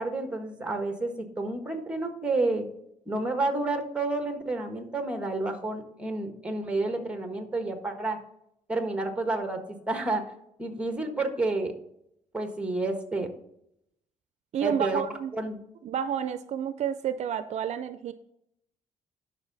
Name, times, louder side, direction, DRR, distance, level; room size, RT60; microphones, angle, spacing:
voice 1, 0.0-2.6 3.1-8.2 8.7-10.3 10.6-11.7 12.3-13.3 14.6-15.0 15.3-15.6, right 2 dB, 10° right, 5 dB, 1.5 m, -30 dB
voice 2, 14.5-15.3 15.8-18.1, right 9 dB, 65° right, 12 dB, 0.5 m, -30 dB
11.5 x 5.7 x 4.0 m, 0.77 s
cardioid pair, 120°, 13 cm